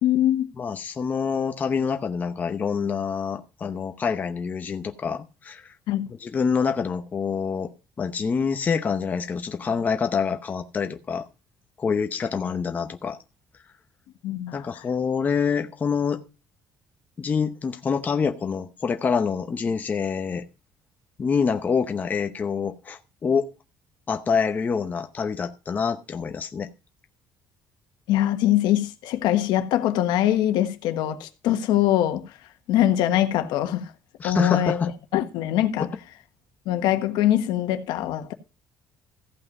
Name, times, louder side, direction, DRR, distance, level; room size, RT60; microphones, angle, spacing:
voice 1, 0.0-0.5 5.9-6.1 14.2-14.8 28.1-32.4 32.7-33.9 34.2-35.9 36.6-38.3, left 12 dB, 85° left, 1.3 m, -23 dB
voice 2, 0.6-5.7 6.2-7.7 8.0-11.2 11.8-13.2 14.5-16.2 17.2-20.4 21.2-23.5 24.1-26.7 34.2-34.9 35.8-35.9, left 6 dB, 25° left, 0.8 m, -26 dB
15.0 x 5.6 x 5.3 m
cardioid pair, 180°, 7 cm